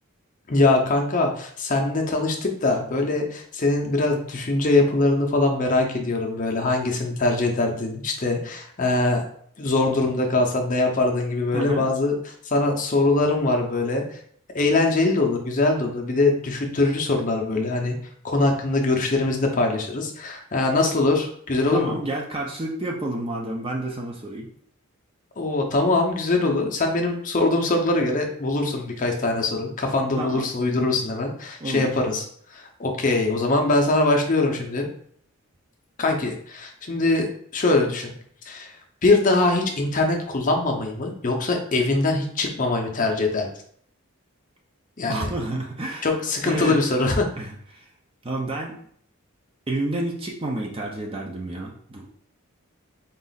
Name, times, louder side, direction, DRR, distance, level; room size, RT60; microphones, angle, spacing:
voice 1, 0.5-9.2 9.6-12.1 12.4-14.2 14.5-18.0 18.2-22.0 25.4-32.2 32.5-34.9 36.0-38.1 38.5-38.7 39.0-43.5 45.0-45.3 46.0-47.3, left 2 dB, 35° left, 2 dB, 0.6 m, -22 dB
voice 2, 11.5-11.9 21.7-24.5 30.2-30.4 31.6-31.9 45.1-46.1 46.4-46.8 47.4-47.9 48.2-48.8 49.7-52.1, right 2 dB, 25° right, 0 dB, 0.5 m, -30 dB
3.9 x 2.4 x 4.0 m, 0.62 s
head